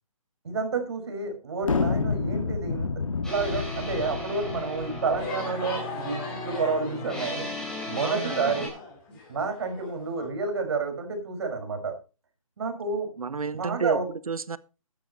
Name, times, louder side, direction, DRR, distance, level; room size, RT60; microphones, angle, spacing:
voice 1, 0.4-2.9 3.2-7.5 7.9-8.7 9.3-11.9 12.6-13.1 13.5-14.1, right 4 dB, 50° right, 5.7 m, -29 dB
sound 1, 1.6-5.3, left 4 dB, 70° left, 2.0 m, -29 dB
sound 2, 3.2-8.7, left 1 dB, 5° left, 4.6 m, -36 dB
sound 3, 5.2-10.3, left 3 dB, 20° left, 7.2 m, -40 dB
voice 2, 8.0-8.6 13.2-14.6, right 5 dB, 85° right, 1.1 m, -31 dB
15.0 x 12.5 x 3.1 m
hypercardioid pair, 160°, 18 cm